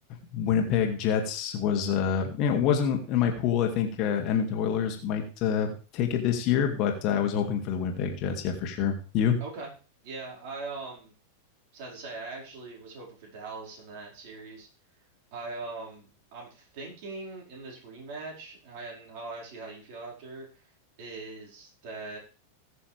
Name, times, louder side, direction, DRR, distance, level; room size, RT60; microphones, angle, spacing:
voice 1, 0.3-9.4, left 8 dB, 40° left, 4 dB, 2.5 m, -26 dB
voice 2, 9.4-9.7 10.0-11.1 11.7-14.7 15.3-20.7 21.0-22.2, right 3 dB, 45° right, -2 dB, 5.1 m, -41 dB
20.5 x 6.9 x 3.5 m, 0.39 s
figure-of-eight pair, 90°, 0 cm